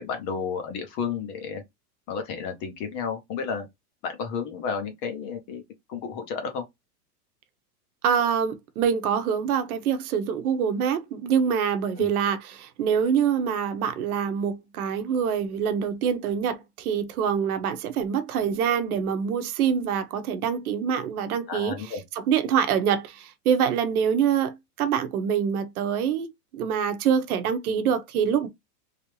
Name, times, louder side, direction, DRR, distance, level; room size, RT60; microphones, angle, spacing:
voice 1, 0.0-1.6 2.1-3.7 4.0-5.6 5.9-6.6 12.0-12.1 21.5-22.0, left 6 dB, 25° left, 0.5 m, -32 dB
voice 2, 8.0-21.7 22.1-26.3 26.5-28.5, right 7 dB, 70° right, 0.9 m, -25 dB
3.3 x 2.7 x 3.0 m
supercardioid pair, 160°, 46 cm